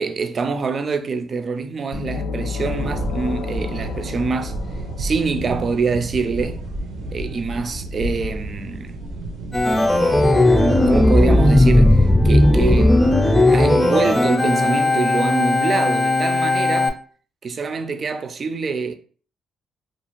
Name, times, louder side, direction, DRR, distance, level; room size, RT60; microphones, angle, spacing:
voice 1, 0.0-4.5 5.0-6.7 7.1-9.0 10.5-13.1 13.5-17.0 17.4-19.0, right 4 dB, 45° right, 0.4 m, -25 dB
sound 1, 1.9-5.7, left 4 dB, 70° left, 0.3 m, -30 dB
sound 2, 2.6-12.1, right 1 dB, 90° right, 0.6 m, -32 dB
Organ, 9.5-16.9, left 1 dB, 10° left, 0.5 m, -16 dB
2.4 x 2.4 x 3.0 m
cardioid pair, 90°, 0 cm